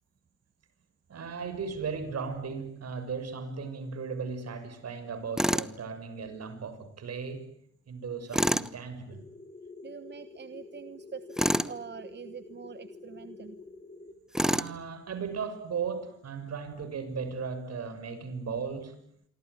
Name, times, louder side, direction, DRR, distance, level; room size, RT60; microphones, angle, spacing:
voice 1, 1.1-7.5 7.9-9.3 14.4-19.0, right 5 dB, 55° right, 6.5 m, -36 dB
Tools, 5.4-5.7 8.3-8.7 11.3-11.7 14.3-14.8, equal, ahead, 1.1 m, -26 dB
sound 1, 9.1-14.1, left 3 dB, 20° left, 3.1 m, -48 dB
voice 2, 9.8-13.6, right 6 dB, 35° right, 1.3 m, -44 dB
27.0 x 24.0 x 8.2 m
cardioid pair, 90°, 30 cm